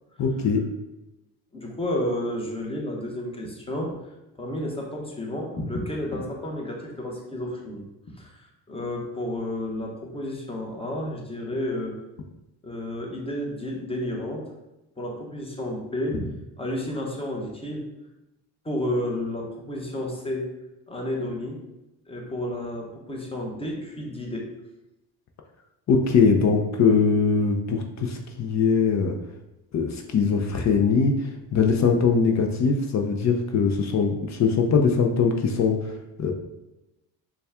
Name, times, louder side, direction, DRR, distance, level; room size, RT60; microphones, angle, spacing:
voice 1, 0.2-0.6 25.9-29.2 29.7-35.8 36.2-36.3, left 5 dB, 45° left, 3 dB, 0.5 m, -21 dB
voice 2, 1.5-3.9 4.4-7.8 8.2-11.9 12.6-14.5 15.0-17.8 18.6-20.5 20.9-21.6 22.1-24.5, left 1 dB, 15° left, -1 dB, 1.0 m, -31 dB
4.0 x 2.3 x 3.5 m, 0.95 s
supercardioid pair, 80°, 41 cm